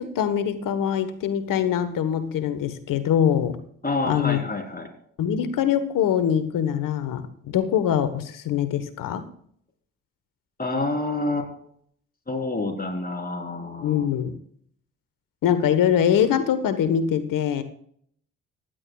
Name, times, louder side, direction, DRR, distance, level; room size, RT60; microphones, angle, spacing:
voice 1, 0.0-3.6 4.0-4.4 5.2-9.3 13.8-14.4 15.4-17.6, left 9 dB, 55° left, 11 dB, 1.3 m, -23 dB
voice 2, 3.8-4.9 10.6-11.5 12.3-14.1, left 2 dB, 25° left, 2 dB, 3.9 m, -28 dB
25.0 x 10.5 x 2.4 m, 0.63 s
figure-of-eight pair, 45°, 38 cm